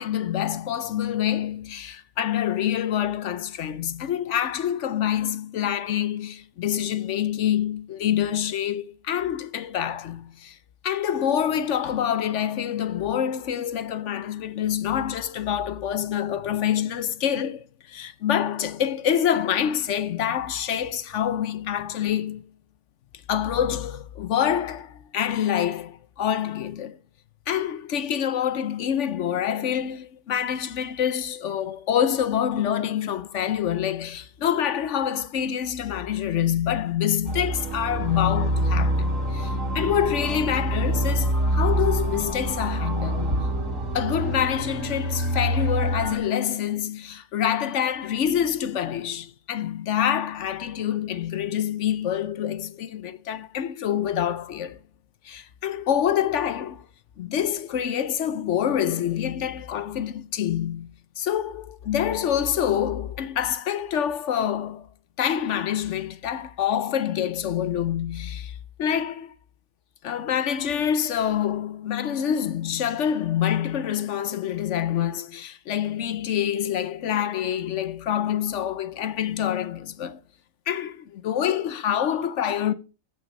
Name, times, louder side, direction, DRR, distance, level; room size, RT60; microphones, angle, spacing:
voice 1, 0.0-10.6 10.8-22.4 23.3-27.0 27.5-43.5 43.9-54.8 55.2-56.8 57.2-60.9 61.2-64.9 65.2-69.3 70.0-80.2 80.7-82.7, left 9 dB, 65° left, 1.0 m, -26 dB
sound 1, 37.2-46.2, right 1 dB, 75° right, 3.6 m, -26 dB
14.5 x 6.2 x 5.2 m
omnidirectional pair, 1.4 m